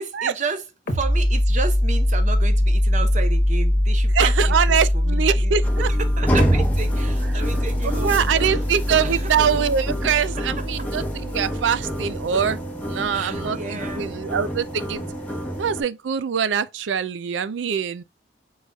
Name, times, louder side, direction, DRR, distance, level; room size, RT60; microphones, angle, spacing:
voice 1, 0.0-5.5 5.8-9.3 13.1-14.4, right 4 dB, 40° right, 0.7 m, -32 dB
sound 1, 0.9-12.2, left 1 dB, 55° left, 1.0 m, -22 dB
voice 2, 4.1-5.9 7.3-7.4 7.8-12.6 12.9-15.1 15.6-18.0, right 7 dB, 85° right, 0.4 m, -23 dB
sound 2, 5.6-15.8, right 1 dB, 10° left, 0.9 m, -28 dB
4.7 x 4.1 x 2.3 m
head